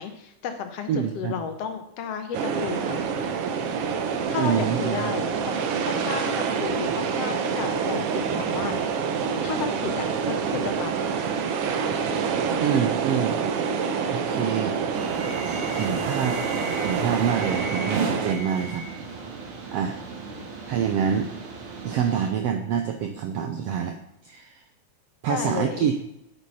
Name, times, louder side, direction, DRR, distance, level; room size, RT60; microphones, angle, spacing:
voice 1, 0.0-3.0 4.3-8.9 9.4-10.9 20.3-20.5 25.3-25.9, left 7 dB, 65° left, 7 dB, 1.7 m, -33 dB
voice 2, 0.9-1.3 4.4-5.1 12.6-13.4 14.1-14.7 15.7-16.4 16.8-18.8 19.7-20.0 20.7-21.3 21.8-24.0 24.2-24.6 25.2-25.9, right 8 dB, 85° right, 5 dB, 1.3 m, -26 dB
sound 1, 2.3-18.4, right 6 dB, 70° right, 1.4 m, -27 dB
sound 2, 14.9-22.3, right 4 dB, 50° right, 2.2 m, -33 dB
8.3 x 8.1 x 5.6 m, 0.84 s
omnidirectional pair, 3.7 m